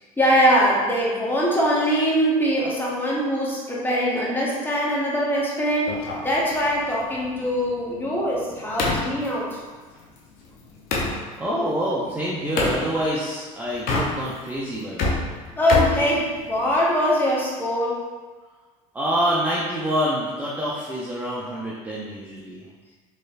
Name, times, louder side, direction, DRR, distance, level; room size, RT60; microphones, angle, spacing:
voice 1, 0.2-5.9 6.2-9.6 15.6-18.0, equal, 10° left, -5 dB, 1.1 m, -22 dB
sound 1, 5.9-11.2 12.6-12.8 13.7-14.5 14.8-16.8, left 2 dB, 55° left, 0.8 m, -28 dB
voice 2, 11.4-15.3 18.9-22.7, equal, 10° right, -7 dB, 0.6 m, -26 dB
4.2 x 3.1 x 2.5 m, 1.4 s
hypercardioid pair, 80°, 18 cm